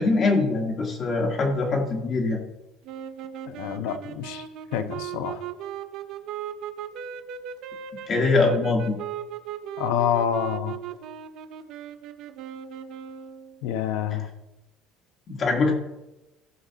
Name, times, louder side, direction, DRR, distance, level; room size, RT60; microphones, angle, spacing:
voice 1, 0.0-2.4 8.1-9.0 15.3-15.7, left 3 dB, 25° left, 0 dB, 1.4 m, -23 dB
sound 1, 2.8-13.6, right 9 dB, 45° right, 0.6 m, -37 dB
voice 2, 3.5-4.4 4.7-5.4 9.8-10.8 13.6-14.3, left 9 dB, 75° left, 8 dB, 1.0 m, -27 dB
16.5 x 6.6 x 2.8 m, 1.0 s
cardioid pair, 175°, 0 cm